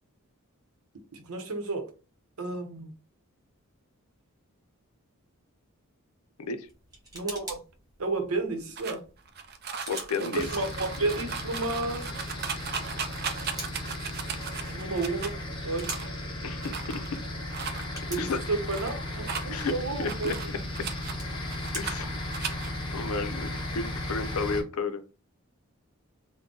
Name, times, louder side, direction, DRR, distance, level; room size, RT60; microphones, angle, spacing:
voice 1, 1.1-1.9 2.4-2.9 7.1-7.6 8.0-9.0 10.2-12.1 14.7-15.9 18.1-20.3, right 3 dB, 80° right, 0.8 m, -32 dB
sound 1, 6.6-24.6, right 1 dB, 15° right, 1.0 m, -48 dB
sound 2, 8.8-15.3 15.8-16.2 16.6-17.2 17.5-17.8 18.3-18.9 19.2-21.1 21.5-22.0 22.3-22.7, right 6 dB, 45° right, 0.4 m, -37 dB
voice 2, 9.9-10.5 16.4-17.0 18.2-18.4 19.5-19.7 20.0-20.4 20.8-20.9 21.7-22.2 22.9-25.0, left 4 dB, 85° left, 0.5 m, -32 dB
sound 3, 10.3-24.6, left 1 dB, 20° left, 0.8 m, -36 dB
3.6 x 2.2 x 3.8 m
head